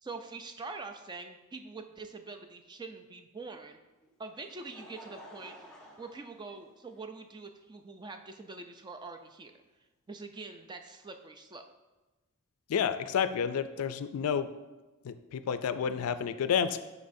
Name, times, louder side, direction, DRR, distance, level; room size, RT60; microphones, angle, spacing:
voice 1, 0.0-3.8 4.2-5.6 6.0-9.5 10.1-11.6, right 3 dB, 20° right, 6 dB, 0.4 m, -44 dB
Laughter, 4.0-7.2 8.1-8.2 9.6-9.7, equal, 5° left, 0.8 m, -53 dB
voice 2, 12.7-14.5 15.0-16.8, left 7 dB, 75° left, 12 dB, 0.3 m, -30 dB
10.5 x 4.0 x 2.6 m, 1.1 s
head